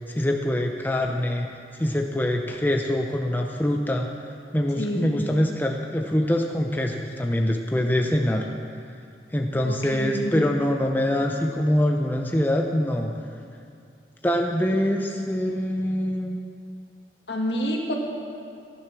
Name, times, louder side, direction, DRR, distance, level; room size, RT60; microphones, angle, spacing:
voice 1, 0.1-1.5 1.7-4.1 4.5-8.5 9.3-13.1 14.2-16.4, left 1 dB, 10° left, 1 dB, 0.6 m, -24 dB
voice 2, 4.8-5.1 9.6-10.4 17.3-17.9, equal, 75° left, 0 dB, 2.1 m, -28 dB
15.0 x 10.0 x 6.1 m, 2.4 s
head